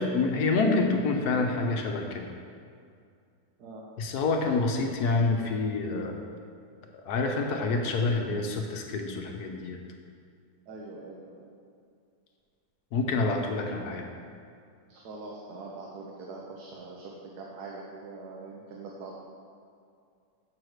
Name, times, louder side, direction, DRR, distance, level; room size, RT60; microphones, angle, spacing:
voice 1, 0.0-2.3 4.0-6.2 7.1-9.8 12.9-14.1, left 3 dB, 80° left, 3 dB, 1.3 m, -27 dB
voice 2, 10.7-11.6 14.9-19.2, right 3 dB, 85° right, -3 dB, 1.4 m, -43 dB
6.7 x 4.7 x 6.4 m, 2.3 s
omnidirectional pair, 1.7 m